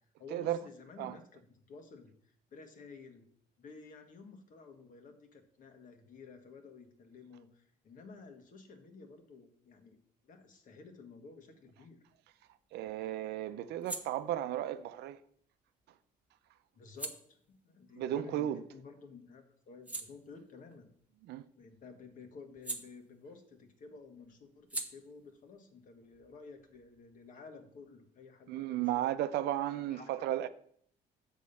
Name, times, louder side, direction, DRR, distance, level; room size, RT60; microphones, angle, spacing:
voice 1, 0.2-3.3 3.6-10.0 10.2-12.0 16.7-17.2 17.5-20.9 21.6-28.9 29.6-30.1, left 4 dB, 50° left, 1.6 m, -53 dB
sound 1, 12.1-19.0 19.4-23.6 23.8-27.3, right 2 dB, 10° right, 1.2 m, -48 dB
voice 2, 12.7-15.2 17.9-18.6 21.2-21.5 28.5-30.5, right 12 dB, 80° right, 0.7 m, -34 dB
7.3 x 6.4 x 5.5 m
cardioid pair, 110°, 17 cm